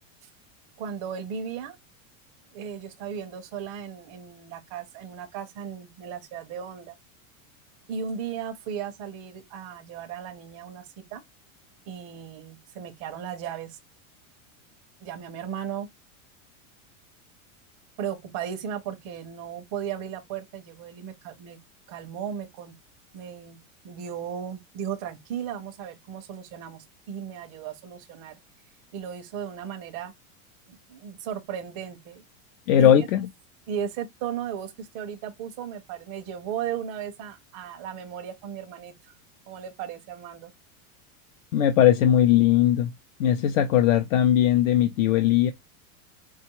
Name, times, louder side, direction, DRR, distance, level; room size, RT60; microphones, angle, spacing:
voice 1, 0.8-1.8 2.5-6.9 7.9-11.2 11.9-13.8 15.0-15.9 18.0-21.6 21.9-22.7 23.1-28.4 28.9-30.1 30.7-32.2 32.8-33.1 33.7-39.1 39.5-40.5, right 8 dB, 25° right, 0.4 m, -36 dB
voice 2, 32.7-33.3 41.5-42.9 43.2-45.5, left 10 dB, 70° left, 0.6 m, -19 dB
4.4 x 2.3 x 2.9 m
supercardioid pair, 175°, 43 cm